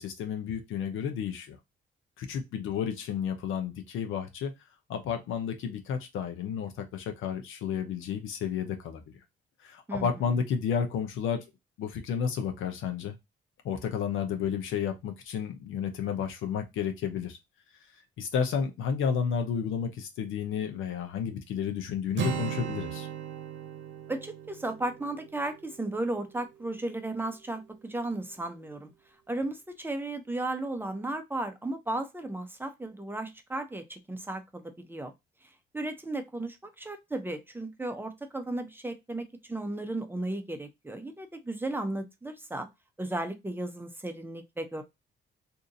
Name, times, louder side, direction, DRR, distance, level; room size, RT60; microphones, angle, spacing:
voice 1, 0.0-1.6 2.2-4.5 4.9-9.0 9.6-11.4 11.8-13.2 13.6-17.4 18.2-23.1, left 7 dB, 85° left, 6 dB, 0.7 m, -31 dB
Acoustic guitar, 22.1-26.1, right 7 dB, 65° right, 0.8 m, -37 dB
voice 2, 24.1-28.9 29.3-35.1 35.7-42.7 43.0-44.8, right 2 dB, 10° right, 7 dB, 0.6 m, -35 dB
2.7 x 2.5 x 3.7 m, 0.21 s
cardioid pair, 90°, 20 cm